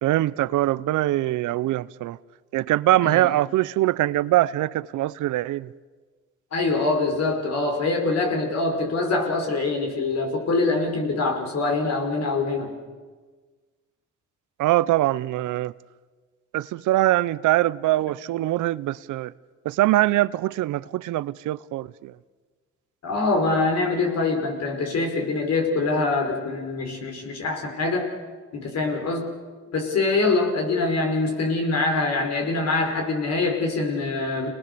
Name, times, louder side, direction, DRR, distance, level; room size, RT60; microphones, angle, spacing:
voice 1, 0.0-2.2 2.5-5.7 14.6-15.7 16.5-19.3 19.6-22.1, right 15 dB, 80° right, 0.6 m, -23 dB
voice 2, 6.5-12.7 23.0-28.1 28.5-29.3 29.7-34.5, left 3 dB, 60° left, 5.4 m, -24 dB
28.5 x 19.5 x 6.9 m
cardioid pair, 90°, 30 cm